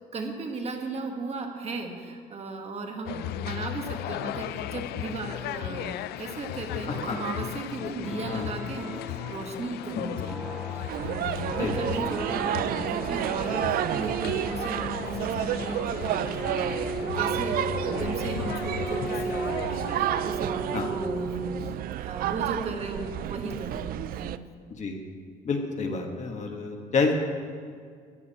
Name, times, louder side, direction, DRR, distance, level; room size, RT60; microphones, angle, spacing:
voice 1, 0.1-21.7 22.0-24.4, right 3 dB, 40° right, 3 dB, 1.6 m, -36 dB
sound 1, 3.1-20.3, left 13 dB, 75° left, 0.4 m, -36 dB
voice 2, 6.9-7.2 7.8-7.9 8.3-8.5 10.1-10.2 11.6-11.8 20.7-20.9 24.8-25.0 25.4-27.1, left 4 dB, 45° left, 2 dB, 1.7 m, -29 dB
sound 2, 7.9-21.7, right 2 dB, 5° right, 1.5 m, -37 dB
sound 3, 10.9-24.4, right 11 dB, 60° right, 0.4 m, -31 dB
13.5 x 9.5 x 4.3 m, 2.1 s
cardioid pair, 110°, 17 cm